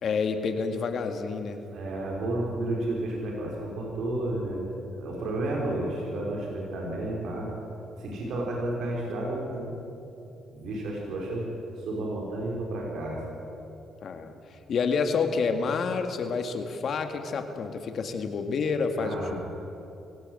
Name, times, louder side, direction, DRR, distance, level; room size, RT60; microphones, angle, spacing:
voice 1, 0.0-1.6 14.0-19.4, left 5 dB, 60° left, 6 dB, 2.0 m, -29 dB
voice 2, 1.7-4.6 4.9-7.5 8.0-9.8 10.5-11.5 11.8-13.2 19.0-19.4, right 1 dB, 75° right, -2 dB, 4.9 m, -31 dB
25.0 x 16.5 x 7.9 m, 2.9 s
cardioid pair, 90°, 0 cm